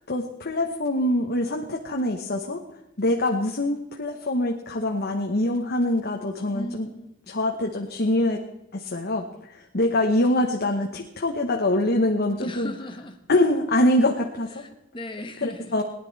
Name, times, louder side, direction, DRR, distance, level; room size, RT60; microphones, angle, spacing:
voice 1, 0.1-2.6 3.0-6.9 7.3-8.4 8.7-9.3 9.5-12.7 13.3-14.6 15.4-15.8, left 1 dB, 50° left, 2 dB, 1.1 m, -24 dB
voice 2, 6.5-7.3 12.4-13.2 14.5-15.8, left 1 dB, 25° left, 6 dB, 1.3 m, -37 dB
18.5 x 10.5 x 4.1 m, 0.86 s
head